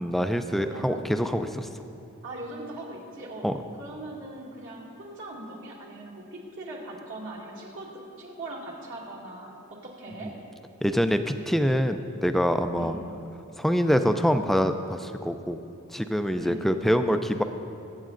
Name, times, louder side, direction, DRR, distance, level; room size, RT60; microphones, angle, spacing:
voice 1, 0.0-1.7 3.4-3.5 10.2-10.3 10.8-13.0 13.6-15.6 15.9-17.4, equal, ahead, 8 dB, 0.3 m, -25 dB
voice 2, 0.6-1.1 2.2-3.5 3.8-7.9 8.2-9.5 10.0-10.3 12.7-12.9 16.4-16.7, right 2 dB, 60° right, -5 dB, 2.2 m, -40 dB
22.0 x 8.2 x 2.5 m, 2.7 s
head